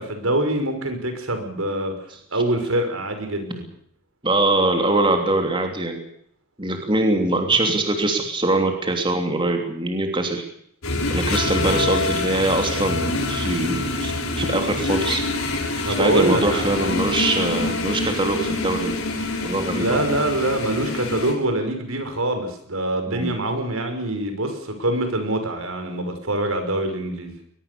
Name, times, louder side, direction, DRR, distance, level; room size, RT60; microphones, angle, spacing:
voice 1, 0.0-1.9 2.3-3.7 15.8-16.6 19.7-27.3, right 1 dB, 85° right, 6 dB, 5.6 m, -24 dB
voice 2, 4.2-6.0 6.6-10.4 11.1-15.2 16.0-19.0 19.4-20.0 23.1-23.3, right 2 dB, 25° right, 4 dB, 3.1 m, -23 dB
sound 1, 10.8-21.3, left 2 dB, 90° left, 5.7 m, -26 dB
22.0 x 21.5 x 6.9 m, 0.66 s
head